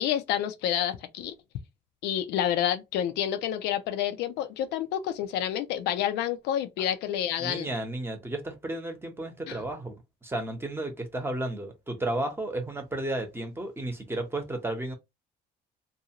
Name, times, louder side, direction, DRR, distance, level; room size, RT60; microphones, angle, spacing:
voice 1, 0.0-1.3 2.0-7.7 9.5-9.6, left 10 dB, 85° left, 0.5 m, -29 dB
voice 2, 7.4-14.9, right 1 dB, 15° right, 0.8 m, -33 dB
2.6 x 2.3 x 2.8 m
cardioid pair, 110°, 17 cm